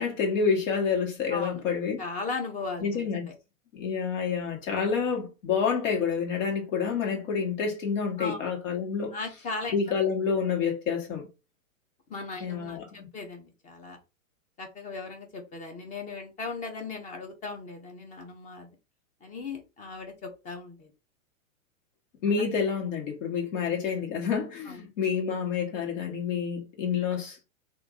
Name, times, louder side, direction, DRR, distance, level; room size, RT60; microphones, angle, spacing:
voice 1, 0.0-2.0 2.8-3.3 3.7-9.2 9.7-11.3 12.4-13.1 22.2-27.4, left 6 dB, 65° left, 1.7 m, -28 dB
voice 2, 1.3-1.6 2.0-3.1 8.2-8.4 9.1-9.7 12.1-14.0 14.6-18.7 19.2-20.9 22.3-22.4 24.7-24.8, left 3 dB, 20° left, 0.8 m, -37 dB
2.9 x 2.7 x 3.7 m
hypercardioid pair, 140°, 40 cm